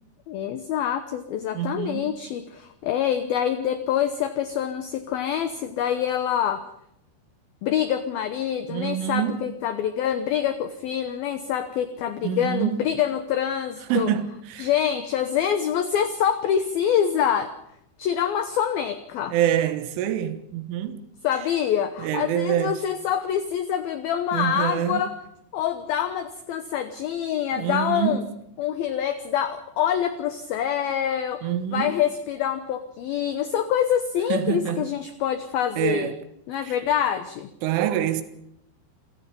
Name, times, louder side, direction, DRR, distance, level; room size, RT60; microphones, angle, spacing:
voice 1, 0.3-6.6 7.6-14.1 14.6-17.5 18.0-19.3 21.2-25.1 25.5-28.2 28.6-36.1 36.5-37.5, left 9 dB, 75° left, 2.3 m, -26 dB
voice 2, 1.6-2.2 8.7-9.5 12.2-12.8 13.9-14.7 19.3-21.0 22.0-22.8 24.3-25.0 27.6-28.3 31.4-32.0 34.3-34.9 35.8-36.2 36.6-36.8 37.6-38.2, right 10 dB, 85° right, 3.9 m, -26 dB
28.0 x 17.0 x 5.4 m
omnidirectional pair, 5.5 m